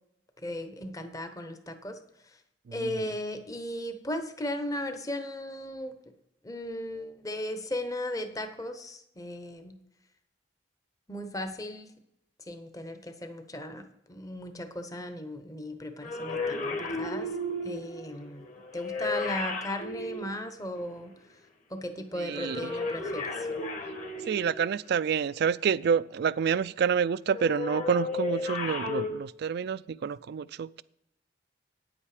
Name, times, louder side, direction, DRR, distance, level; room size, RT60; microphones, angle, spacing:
voice 1, 0.4-2.0 2.2-2.4 2.7-5.9 6.4-9.8 11.1-11.9 12.5-17.3 17.6-21.2 21.7-23.5, left 1 dB, 20° left, 8 dB, 0.9 m, -36 dB
voice 2, 2.7-3.0 22.1-22.7 24.2-30.8, right 7 dB, 60° right, 18 dB, 0.3 m, -28 dB
sound 1, 16.0-21.0 22.3-24.8 27.3-29.1, left 2 dB, 40° left, 1.6 m, -34 dB
9.3 x 8.6 x 4.9 m, 0.79 s
head